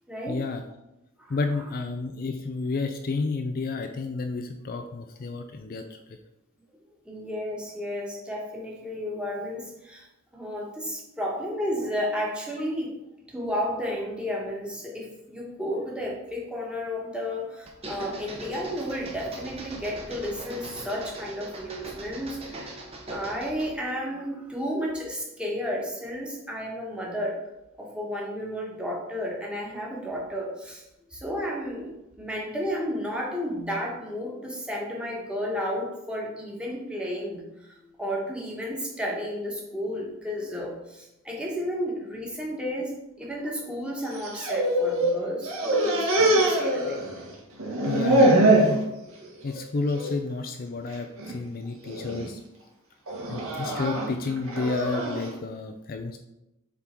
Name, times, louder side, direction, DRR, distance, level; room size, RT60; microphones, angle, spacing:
voice 1, 0.3-0.6 1.3-6.0 47.9-48.8 49.4-52.4 53.3-56.2, left 3 dB, 45° left, 6 dB, 0.4 m, -31 dB
voice 2, 1.2-1.7 7.0-10.1 10.3-13.0 13.3-22.7 23.1-27.4 27.8-30.8 31.1-31.9 32.2-47.0, equal, 5° right, -3 dB, 1.4 m, -32 dB
sound 1, 17.7-23.8, right 1 dB, 30° right, 1.1 m, -41 dB
sound 2, 44.1-45.1 45.4-47.3 47.6-48.7 49.2-49.6 49.9-50.1 50.9-51.3 51.8-52.2 53.1-55.3, right 1 dB, 85° right, 1.9 m, -23 dB
7.3 x 3.6 x 4.5 m, 0.91 s
head